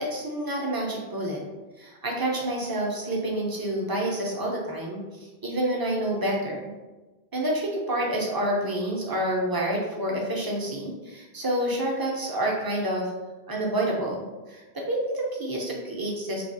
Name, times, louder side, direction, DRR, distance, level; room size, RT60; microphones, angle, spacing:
voice 1, 0.0-1.4 1.8-5.0 5.4-6.7 7.3-13.1 13.5-16.5, right 1 dB, 35° right, -2 dB, 0.4 m, -28 dB
3.2 x 2.3 x 2.6 m, 1.2 s
omnidirectional pair, 1.0 m